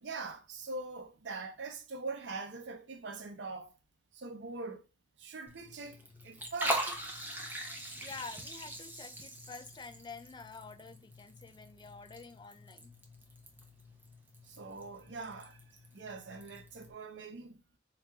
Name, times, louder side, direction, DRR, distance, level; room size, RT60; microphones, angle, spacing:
voice 1, 0.0-3.8 4.1-4.8 5.2-6.9 14.4-17.8, right 3 dB, 70° right, 0.6 m, -43 dB
Liquid, 5.5-16.9, right 1 dB, 10° right, 0.6 m, -42 dB
voice 2, 8.0-12.9, left 4 dB, 25° left, 0.3 m, -48 dB
4.8 x 2.8 x 2.3 m
head